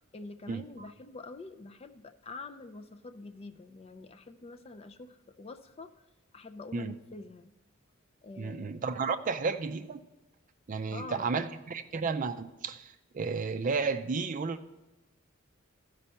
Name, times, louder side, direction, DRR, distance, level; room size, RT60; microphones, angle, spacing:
voice 1, 0.1-5.9 6.3-7.5 8.2-8.8 10.9-11.5, left 3 dB, 30° left, 10 dB, 0.4 m, -46 dB
voice 2, 8.4-10.0 10.7-14.6, right 4 dB, 40° right, 9 dB, 0.4 m, -32 dB
13.5 x 5.3 x 5.5 m, 1.0 s
head